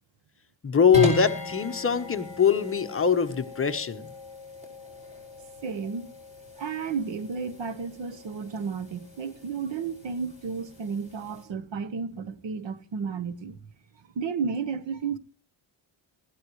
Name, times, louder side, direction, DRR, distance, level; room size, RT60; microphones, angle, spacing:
voice 1, 0.6-4.0, left 7 dB, 25° left, 1.0 m, -22 dB
sound 1, 0.9-11.4, equal, 15° right, 5.0 m, -37 dB
voice 2, 5.6-6.2 6.6-13.6 14.1-15.2, right 5 dB, 65° right, 1.2 m, -32 dB
20.0 x 14.5 x 3.1 m
wide cardioid pair, 155°, 48 cm